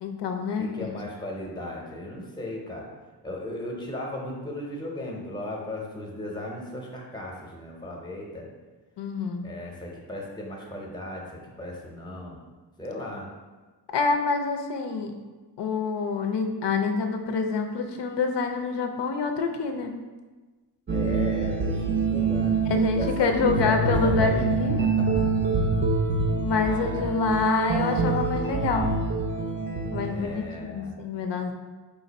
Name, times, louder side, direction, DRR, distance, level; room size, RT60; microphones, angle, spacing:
voice 1, 0.0-0.9 9.0-9.5 13.9-15.1 15.6-20.0 22.7-24.8 26.4-28.9 29.9-31.5, left 4 dB, 85° left, 4 dB, 0.5 m, -27 dB
voice 2, 0.6-2.9 3.2-8.5 9.4-12.4 12.8-13.3 20.9-22.6 22.9-24.5 24.8-25.2 26.5-27.1 30.0-30.9, left 1 dB, 10° left, -1 dB, 0.6 m, -36 dB
sound 1, 20.9-30.5, right 4 dB, 30° right, 0.3 m, -25 dB
4.7 x 2.5 x 4.0 m, 1.3 s
wide cardioid pair, 170°, 41 cm